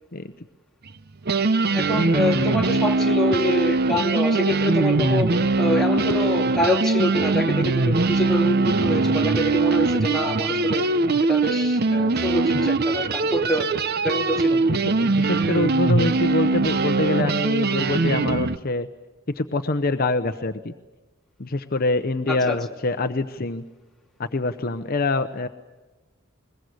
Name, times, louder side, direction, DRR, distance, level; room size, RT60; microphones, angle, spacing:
sound 1, 0.9-1.0 1.2-18.6, right 3 dB, 50° right, 0.7 m, -21 dB
voice 1, 1.7-5.3 5.6-10.9 11.3-13.7 14.0-14.6 22.3-22.6, left 1 dB, ahead, 0 dB, 2.7 m, -25 dB
voice 2, 14.5-18.9 19.4-20.7 21.4-23.6 24.2-25.5, left 2 dB, 45° left, 9 dB, 0.9 m, -25 dB
22.0 x 21.0 x 8.1 m, 1.2 s
head